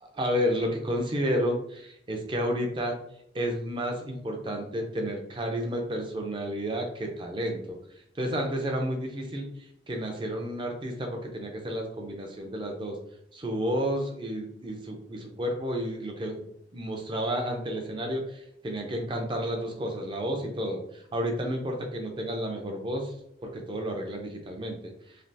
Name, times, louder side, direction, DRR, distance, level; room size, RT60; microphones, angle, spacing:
voice 1, 0.1-3.0 3.3-7.8 8.2-9.5 9.9-13.0 13.3-16.4 16.7-23.1 23.4-24.9, equal, 25° right, 2 dB, 0.5 m, -31 dB
3.3 x 2.3 x 2.6 m, 0.76 s
head